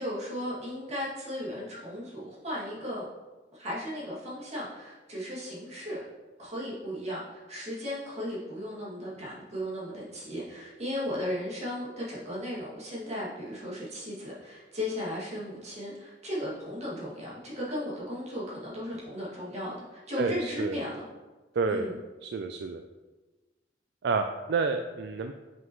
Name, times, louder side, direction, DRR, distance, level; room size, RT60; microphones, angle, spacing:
voice 1, 0.0-3.1 3.5-6.0 6.4-21.1 21.7-22.0, equal, 40° right, -7 dB, 2.3 m, -36 dB
voice 2, 20.2-20.8 21.5-21.9 22.2-22.8 24.0-25.3, right 4 dB, 65° right, 6 dB, 0.3 m, -29 dB
7.3 x 5.8 x 3.1 m, 1.2 s
head